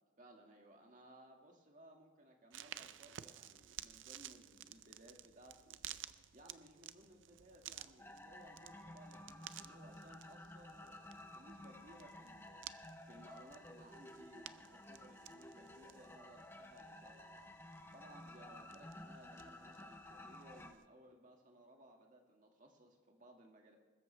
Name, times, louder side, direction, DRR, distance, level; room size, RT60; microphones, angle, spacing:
voice 1, 0.2-6.0 6.3-17.5 17.9-23.8, right 1 dB, 40° right, 2 dB, 2.0 m, -61 dB
sound 1, 2.5-20.9, right 11 dB, 80° right, 0.5 m, -55 dB
sound 2, 8.0-20.7, left 1 dB, 10° left, 0.7 m, -54 dB
21.0 x 13.5 x 3.4 m, 1.4 s
head